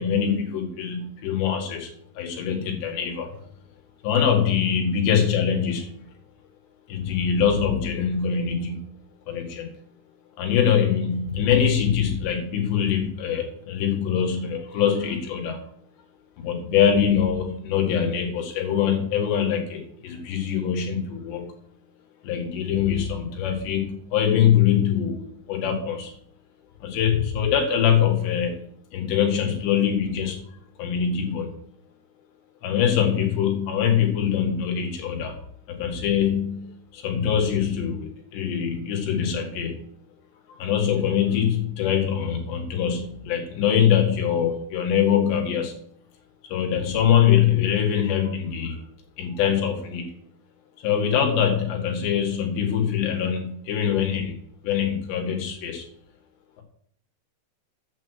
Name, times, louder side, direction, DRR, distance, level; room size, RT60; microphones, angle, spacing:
voice 1, 0.0-1.9 2.2-3.3 4.0-5.9 6.9-8.9 9.3-9.8 10.4-15.6 16.4-21.5 22.2-26.1 26.8-28.6 28.9-30.4 30.8-31.5 32.6-35.3 35.7-39.9 40.6-45.8 46.5-48.8 49.2-50.1 50.8-54.3 54.6-55.9, left 8 dB, 90° left, 2 dB, 4.0 m, -23 dB
8.8 x 6.3 x 7.7 m, 0.65 s
omnidirectional pair, 4.8 m